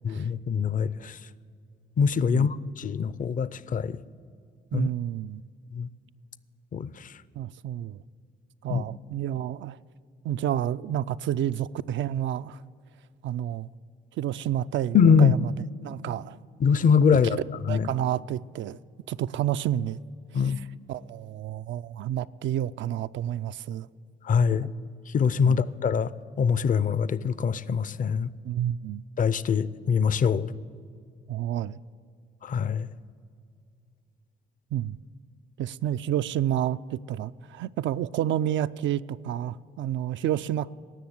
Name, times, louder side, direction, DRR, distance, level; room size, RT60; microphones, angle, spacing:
voice 1, 0.0-1.2 2.0-4.0 4.7-4.9 5.7-5.9 6.7-7.1 8.7-8.8 14.9-15.4 16.6-17.4 17.7-17.9 20.3-20.6 24.2-24.7 25.1-26.1 26.4-28.3 29.2-30.5 32.4-32.9, left 6 dB, 40° left, 0.5 m, -23 dB
voice 2, 4.7-5.4 7.4-8.0 8.6-9.8 10.2-12.6 13.2-13.7 14.2-15.5 15.8-16.4 17.1-18.8 19.1-20.0 20.3-20.4 20.9-23.9 24.5-24.7 25.4-25.6 28.4-29.0 31.3-31.8 34.7-35.0 35.6-40.7, right 11 dB, 70° right, 0.4 m, -30 dB
18.0 x 6.9 x 9.4 m
cardioid pair, 90°, 20 cm